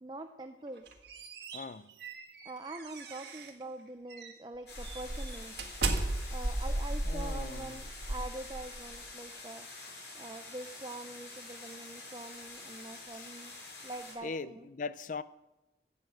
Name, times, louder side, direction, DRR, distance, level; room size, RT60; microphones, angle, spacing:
voice 1, 0.0-0.8 2.4-5.7 6.3-9.7 10.1-13.5 13.8-14.7, right 2 dB, 25° right, 0.6 m, -44 dB
sound 1, 0.7-3.6 4.1-4.3 4.8-9.0, right 2 dB, 65° right, 1.6 m, -36 dB
voice 2, 1.5-1.9 6.2-6.6 7.0-7.8 13.1-13.3 14.2-15.2, left 4 dB, 45° left, 0.5 m, -41 dB
sound 2, 4.7-14.1, left 3 dB, 65° left, 5.9 m, -47 dB
13.0 x 8.1 x 7.7 m
head